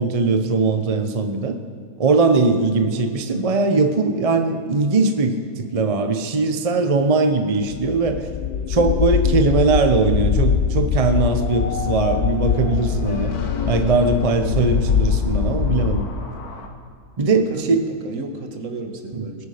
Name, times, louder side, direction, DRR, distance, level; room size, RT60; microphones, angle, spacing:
voice 1, 0.0-1.6 2.0-8.3 8.7-13.3 13.6-16.1 17.2-17.8 19.1-19.2, right 3 dB, 30° right, 7 dB, 0.7 m, -20 dB
voice 2, 2.6-2.9 14.4-14.9 17.3-19.5, right 3 dB, 60° right, 5 dB, 1.7 m, -33 dB
sound 1, 7.7-16.0, left 7 dB, 65° left, 0.5 m, -22 dB
sound 2, 11.4-16.7, left 5 dB, 85° left, 1.7 m, -35 dB
20.5 x 9.2 x 5.0 m, 2.3 s
omnidirectional pair, 1.5 m